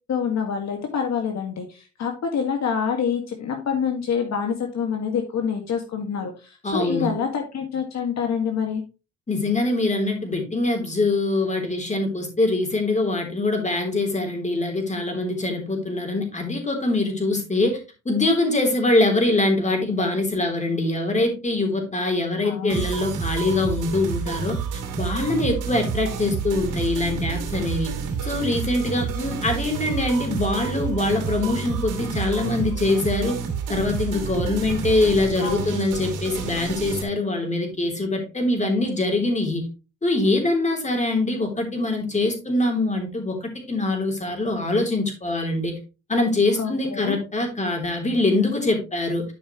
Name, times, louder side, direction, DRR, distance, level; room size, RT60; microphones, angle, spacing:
voice 1, 0.1-8.8 22.4-22.8 35.4-35.7 46.6-47.2, left 7 dB, 60° left, 3 dB, 1.9 m, -26 dB
voice 2, 6.6-7.1 9.3-17.8 18.1-24.6 25.0-27.9 28.2-33.4 33.7-39.6 40.0-45.8 46.1-49.2, left 2 dB, 25° left, 3 dB, 3.6 m, -23 dB
sound 1, 22.7-37.0, right 6 dB, 85° right, 2.5 m, -29 dB
11.5 x 5.6 x 3.1 m, 0.30 s
cardioid pair, 90°, 30 cm